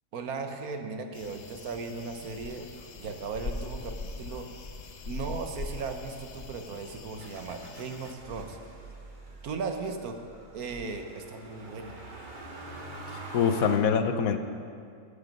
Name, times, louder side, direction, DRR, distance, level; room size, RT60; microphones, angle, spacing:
voice 1, 0.1-2.6 3.0-4.5 5.1-8.6 9.4-10.2 10.5-11.9, right 4 dB, 85° right, 6 dB, 1.5 m, -37 dB
sound 1, 1.1-8.1, left 3 dB, 50° left, 0.5 m, -41 dB
Motor vehicle (road), 7.2-13.8, right 1 dB, 35° right, 1.3 m, -45 dB
voice 2, 13.1-14.4, left 7 dB, 75° left, 8 dB, 1.2 m, -25 dB
12.0 x 11.5 x 5.3 m, 2.3 s
omnidirectional pair, 1.5 m